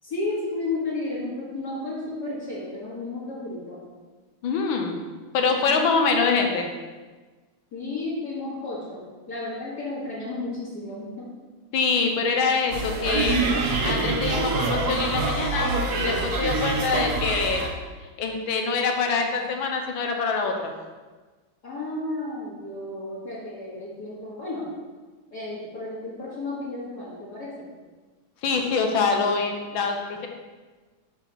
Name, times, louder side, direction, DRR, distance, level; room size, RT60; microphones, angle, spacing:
voice 1, 0.0-3.8 5.6-6.0 7.7-11.3 19.3-19.4 21.6-24.7 25.3-27.7, left 2 dB, 50° left, -10 dB, 2.2 m, -33 dB
voice 2, 4.4-5.0 5.3-6.7 11.7-13.4 13.8-17.7 18.2-20.7 28.4-30.3, left 4 dB, 75° left, 3 dB, 1.6 m, -25 dB
sound 1, 12.7-17.7, right 3 dB, 60° right, 1.3 m, -25 dB
7.1 x 4.1 x 5.6 m, 1.3 s
omnidirectional pair, 2.3 m